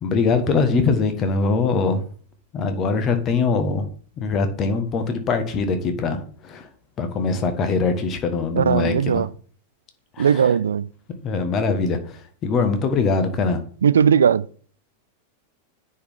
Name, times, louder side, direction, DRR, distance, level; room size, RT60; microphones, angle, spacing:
voice 1, 0.0-2.0 2.5-3.9 4.2-6.7 7.0-9.3 10.2-10.4 11.2-13.6, left 4 dB, 30° left, 1.4 m, -22 dB
voice 2, 8.6-9.3 10.2-10.9 13.8-14.5, right 7 dB, 70° right, 0.3 m, -18 dB
9.3 x 4.5 x 3.6 m
figure-of-eight pair, 90°, 0 cm